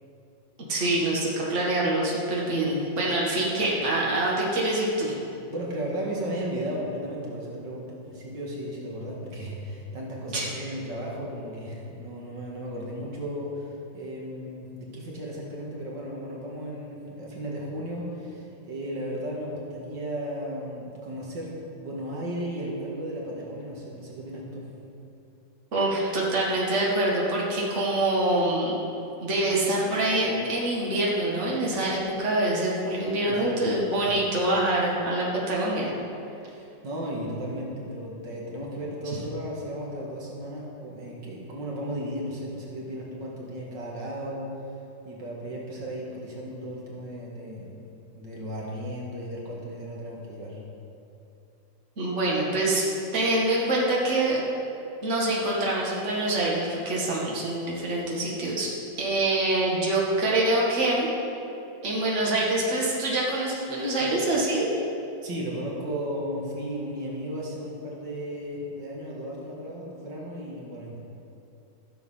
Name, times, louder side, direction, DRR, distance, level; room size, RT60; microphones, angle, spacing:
voice 1, 0.7-5.1 10.3-10.5 25.7-28.7 29.2-35.9 52.0-52.8 53.1-54.4 55.0-58.7 59.0-61.1 61.8-64.7, right 1 dB, 40° right, -5 dB, 2.1 m, -25 dB
voice 2, 5.5-24.7 33.2-33.6 34.0-34.1 36.4-44.5 45.1-47.8 48.1-50.6 65.2-71.0, equal, 75° right, -3 dB, 2.3 m, -35 dB
13.0 x 7.0 x 5.6 m, 2.7 s
omnidirectional pair, 2.0 m